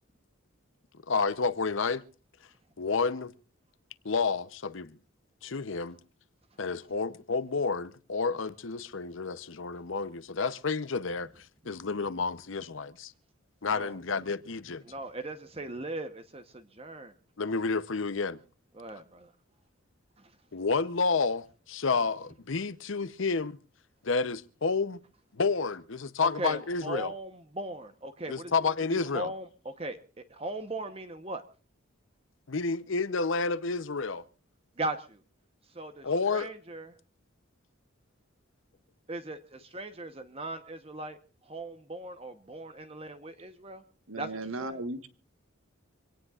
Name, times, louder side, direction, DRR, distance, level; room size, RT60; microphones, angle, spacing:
voice 1, 1.1-2.0 2.8-3.3 4.0-4.9 5.4-6.0 6.6-13.1 13.6-14.8 17.4-18.4 20.5-23.6 24.0-25.0 25.3-27.1 28.3-29.3 32.5-34.2 36.0-36.5, left 4 dB, 70° left, 0.8 m, -30 dB
voice 2, 14.8-17.1 18.7-19.3 20.2-20.3 26.2-31.4 34.8-35.2 35.7-37.0 39.1-41.2 41.4-43.8 44.2-44.8, right 2 dB, 30° right, 1.0 m, -39 dB
voice 3, 44.1-45.1, right 2 dB, 85° right, 1.4 m, -36 dB
25.5 x 18.0 x 2.4 m
head